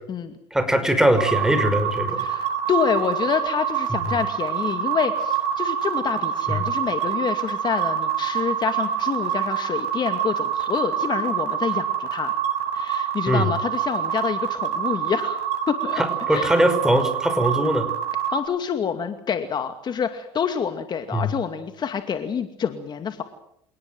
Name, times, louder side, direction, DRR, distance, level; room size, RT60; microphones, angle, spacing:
voice 1, 0.5-2.2 6.5-6.6 13.3-13.5 16.0-17.9 21.1-21.3, right 1 dB, 5° right, 9 dB, 5.6 m, -21 dB
sound 1, 1.2-18.4, right 9 dB, 65° right, 6.9 m, -26 dB
voice 2, 2.2-12.3 12.7-16.0 16.3-16.6 18.3-23.2, left 7 dB, 40° left, 8 dB, 2.4 m, -27 dB
27.5 x 19.0 x 7.8 m, 0.71 s
supercardioid pair, 95°, 12 cm